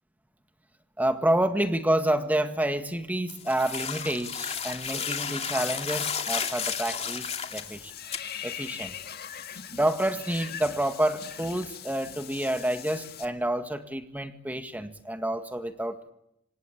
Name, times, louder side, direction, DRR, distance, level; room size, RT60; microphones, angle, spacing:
voice 1, 1.0-7.9 8.4-8.9 9.7-16.1, right 1 dB, 10° right, 8 dB, 1.9 m, -28 dB
sound 1, 3.3-7.7 8.1-8.2, left 7 dB, 35° left, 2.6 m, -32 dB
Water / Bathtub (filling or washing), 7.3-13.3, left 9 dB, 55° left, 1.9 m, -41 dB
26.5 x 24.0 x 8.4 m, 0.80 s
head